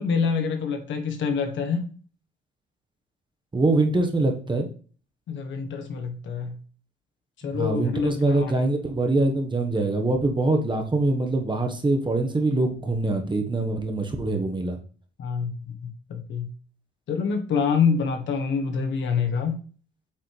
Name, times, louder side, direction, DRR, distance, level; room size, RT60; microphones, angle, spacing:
voice 1, 0.0-1.9 5.3-6.6 7.4-8.5 15.2-15.5 15.8-16.5 17.1-19.6, left 6 dB, 70° left, 1.3 m, -26 dB
voice 2, 3.5-4.7 7.4-14.8, right 2 dB, 25° right, 1.4 m, -24 dB
8.3 x 5.6 x 3.4 m
cardioid pair, 90°, 20 cm